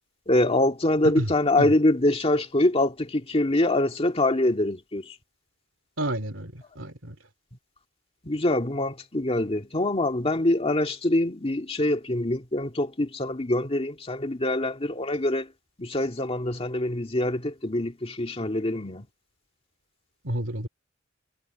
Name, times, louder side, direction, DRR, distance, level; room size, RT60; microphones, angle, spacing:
voice 1, 0.3-5.2 8.2-15.5 15.8-19.1, left 1 dB, 30° left, 2.1 m, -24 dB
voice 2, 6.0-7.2 20.2-20.7, right 1 dB, 75° right, 2.6 m, -30 dB
head